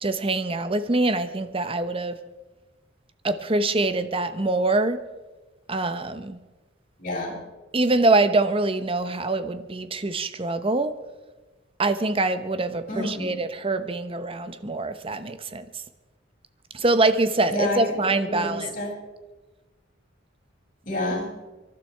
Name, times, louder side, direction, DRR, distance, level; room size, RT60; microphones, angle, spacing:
voice 1, 0.0-2.2 3.2-5.1 5.7-6.4 7.7-11.0 11.8-15.8 16.7-18.7, right 2 dB, 30° right, 0.9 m, -24 dB
voice 2, 7.0-7.4 12.9-13.3 17.5-17.8 18.3-19.0 20.9-21.4, left 1 dB, 45° left, 5.9 m, -29 dB
25.0 x 12.0 x 4.6 m
head